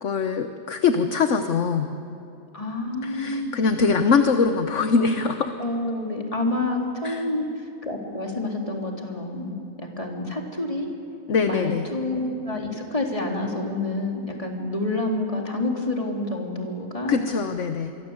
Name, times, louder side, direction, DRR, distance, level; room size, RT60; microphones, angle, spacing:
voice 1, 0.0-1.9 3.0-5.6 7.0-7.3 11.3-11.9 17.1-17.9, left 5 dB, 55° left, 7 dB, 1.3 m, -22 dB
voice 2, 2.5-3.5 5.6-10.9 11.5-17.1, left 2 dB, 20° left, 0 dB, 3.3 m, -28 dB
27.0 x 23.5 x 8.0 m, 2.7 s
omnidirectional pair, 1.7 m